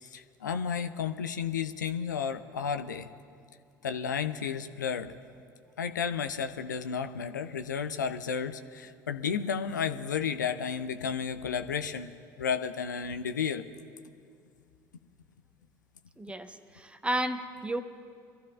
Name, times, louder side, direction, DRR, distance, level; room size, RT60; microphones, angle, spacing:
voice 1, 0.0-3.1 3.8-5.1 5.8-12.1 12.4-13.7, left 7 dB, 80° left, 9 dB, 0.5 m, -32 dB
voice 2, 16.2-17.8, right 1 dB, 10° right, 9 dB, 1.0 m, -32 dB
24.5 x 14.5 x 2.4 m, 2.4 s
figure-of-eight pair, 60°, 10 cm